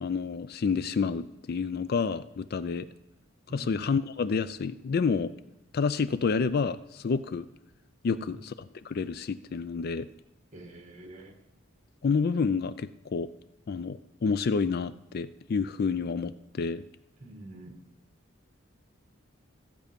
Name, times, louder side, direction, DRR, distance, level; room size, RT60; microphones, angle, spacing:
voice 1, 0.0-2.9 3.5-5.3 5.7-7.5 8.0-8.5 8.8-10.1 12.0-13.3 13.7-16.8, left 5 dB, 50° left, 15 dB, 0.4 m, -29 dB
voice 2, 8.0-8.4 10.5-11.4 17.2-17.8, right 2 dB, 35° right, 3 dB, 1.9 m, -46 dB
14.5 x 8.2 x 5.2 m, 0.94 s
head